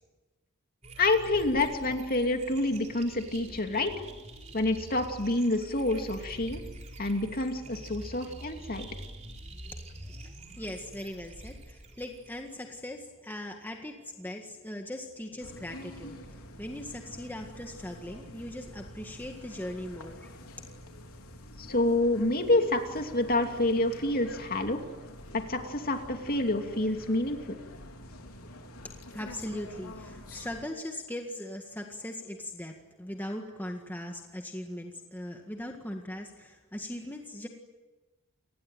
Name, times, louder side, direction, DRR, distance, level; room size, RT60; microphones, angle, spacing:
sound 1, 0.8-12.8, right 1 dB, 30° right, 3.8 m, -46 dB
voice 1, 1.0-3.9 4.5-6.6 7.0-8.9 21.6-24.8 25.3-27.6, left 2 dB, 45° left, 4 dB, 2.8 m, -28 dB
voice 2, 10.6-16.2 16.6-20.3 28.8-37.5, left 1 dB, 10° left, 2 dB, 1.9 m, -39 dB
sound 2, 15.4-30.6, left 1 dB, 90° left, 3.6 m, -47 dB
29.0 x 20.0 x 9.3 m, 1.2 s
head